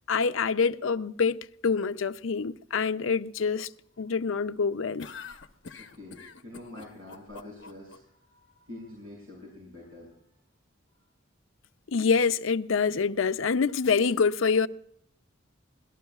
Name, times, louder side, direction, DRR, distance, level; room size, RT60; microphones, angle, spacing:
voice 1, 0.1-3.7 4.0-5.1 11.9-14.7, left 5 dB, 80° left, 0.6 m, -26 dB
sound 1, 5.0-8.0, left 5 dB, 65° left, 1.0 m, -45 dB
voice 2, 5.7-10.1, left 1 dB, 90° right, 6.9 m, -46 dB
24.5 x 18.0 x 2.4 m
head